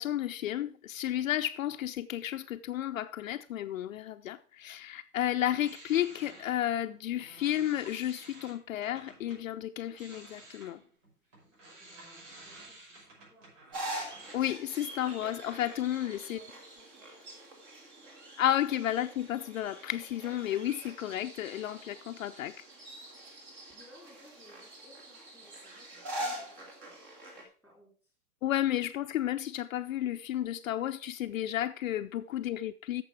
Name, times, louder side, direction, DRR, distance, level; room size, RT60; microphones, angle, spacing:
voice 1, 0.0-10.8 14.3-16.4 18.4-22.6 28.4-33.0, left 12 dB, 65° left, 0.6 m, -32 dB
sound 1, 5.5-9.4 9.8-14.3, right 2 dB, 55° right, 5.7 m, -53 dB
voice 2, 11.8-12.8 13.1-13.6 16.2-17.2 17.5-17.7 18.0-18.1 23.7-26.9 27.3-28.1, left 1 dB, 5° right, 3.2 m, -60 dB
sound 2, 13.7-27.4, right 1 dB, 30° right, 2.1 m, -44 dB
8.8 x 6.9 x 4.8 m
hypercardioid pair, 170°, 44 cm